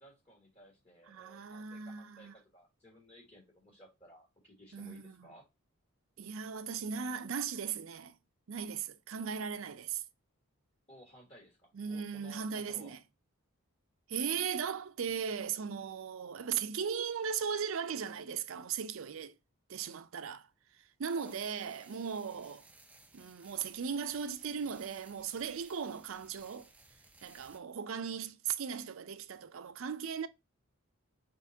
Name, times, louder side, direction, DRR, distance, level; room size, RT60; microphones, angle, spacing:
voice 1, 0.0-5.5 10.9-13.0 21.1-21.3 21.7-22.5, equal, 30° left, 1.6 m, -58 dB
voice 2, 1.1-2.3 4.7-5.3 6.2-8.1 8.5-10.0 11.7-13.0 14.1-19.3 19.7-20.5 21.0-22.6 23.1-26.7 27.2-30.3, right 7 dB, 65° right, 0.5 m, -37 dB
sound 1, 21.0-27.6, right 2 dB, 5° right, 0.4 m, -60 dB
5.0 x 3.6 x 2.6 m
head